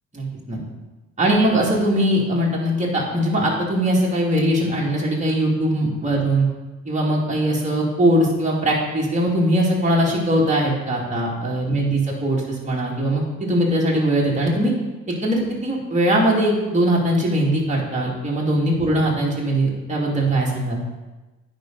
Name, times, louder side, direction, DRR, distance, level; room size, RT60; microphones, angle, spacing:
voice 1, 0.1-0.6 1.2-6.5 6.9-14.7 15.1-20.8, right 1 dB, 20° right, -4 dB, 2.6 m, -21 dB
9.4 x 5.3 x 4.0 m, 1.2 s
supercardioid pair, 65°, 32 cm